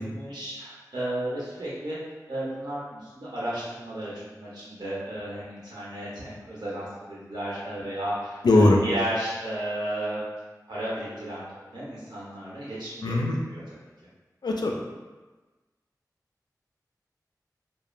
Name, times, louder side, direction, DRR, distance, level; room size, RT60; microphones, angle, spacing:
voice 1, 0.0-2.0 2.3-10.2 10.7-11.4 11.7-13.2 13.5-13.6, right 1 dB, 90° right, -8 dB, 1.0 m, -33 dB
voice 2, 8.4-8.8 13.0-13.4 14.4-14.8, left 2 dB, 80° left, 1 dB, 0.4 m, -20 dB
2.9 x 2.1 x 2.4 m, 1.2 s
wide cardioid pair, 70°, 7 cm